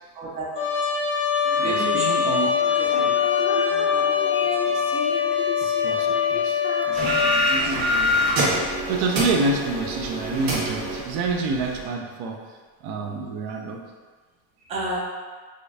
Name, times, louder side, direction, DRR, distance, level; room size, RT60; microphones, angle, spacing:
voice 1, 0.2-0.5 1.6-2.1 2.8-3.0 3.4-4.7 14.7-15.0, right 3 dB, 15° right, -4 dB, 0.4 m, -32 dB
Trumpet, 0.6-7.4, left 7 dB, 25° left, 0.6 m, -23 dB
Female singing, 1.4-8.8, left 4 dB, 70° left, 0.7 m, -35 dB
voice 2, 1.6-2.6 3.0-3.1 5.6-13.8, right 3 dB, 65° right, 2 dB, 0.6 m, -29 dB
sound 1, 6.9-11.8, equal, 45° right, 1.3 m, -25 dB
5.0 x 2.4 x 2.6 m, 1.5 s
cardioid pair, 150°, 45 cm